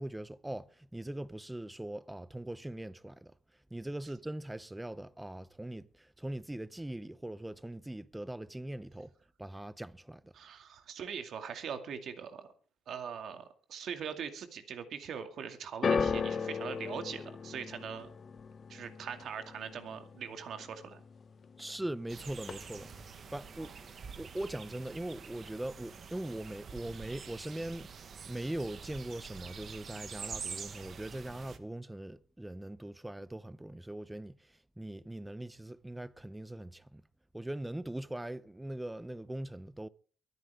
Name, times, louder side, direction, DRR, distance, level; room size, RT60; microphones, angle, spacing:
voice 1, 0.0-3.3 3.7-9.1 9.4-10.3 21.6-22.9 23.3-23.7 24.2-27.9 28.3-34.4 34.8-37.0 37.3-39.9, right 1 dB, 10° right, 0.7 m, -41 dB
voice 2, 10.3-12.5 12.9-18.1 18.7-21.0 23.6-23.8, right 7 dB, 65° right, 2.3 m, -42 dB
sound 1, 15.8-22.1 22.4-23.0 23.8-23.9, left 5 dB, 45° left, 0.8 m, -37 dB
sound 2, 22.1-31.6, right 6 dB, 50° right, 1.4 m, -46 dB
23.0 x 9.9 x 3.6 m
cardioid pair, 90°, 0 cm